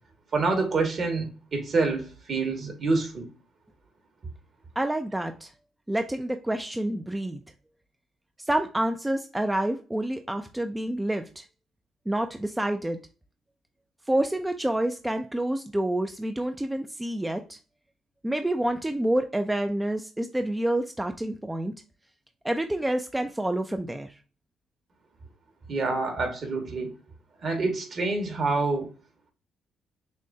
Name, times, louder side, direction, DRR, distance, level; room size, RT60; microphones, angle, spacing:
voice 1, 0.3-3.3 25.7-26.9 27.4-28.9, right 3 dB, 50° right, 1.6 m, -27 dB
voice 2, 4.8-5.5 5.9-7.4 8.4-11.4 12.1-13.0 14.1-17.6 18.2-21.7 22.4-24.2, right 1 dB, 10° right, 0.4 m, -28 dB
6.3 x 2.2 x 2.7 m
cardioid pair, 90°, 0 cm